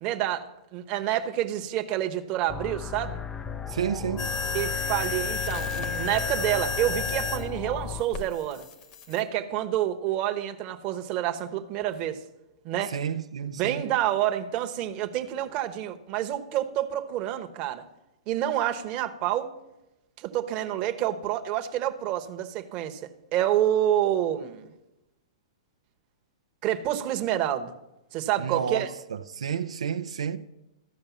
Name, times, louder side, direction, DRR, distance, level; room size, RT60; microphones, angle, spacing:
voice 1, 0.0-0.4 0.7-3.2 4.5-8.7 9.1-12.2 12.6-12.9 13.4-17.9 18.3-19.5 20.2-23.0 23.3-24.6 26.6-27.7 28.1-28.9, right 12 dB, 35° right, 1.0 m, -28 dB
sound 1, 2.5-8.0, left 7 dB, 15° left, 0.5 m, -36 dB
voice 2, 3.7-4.3 12.9-13.8 28.4-30.4, right 7 dB, 85° right, 0.5 m, -31 dB
sound 2, 4.2-7.4 8.1-9.2, left 4 dB, 40° left, 1.4 m, -31 dB
13.5 x 5.2 x 7.2 m
hypercardioid pair, 130°, 3 cm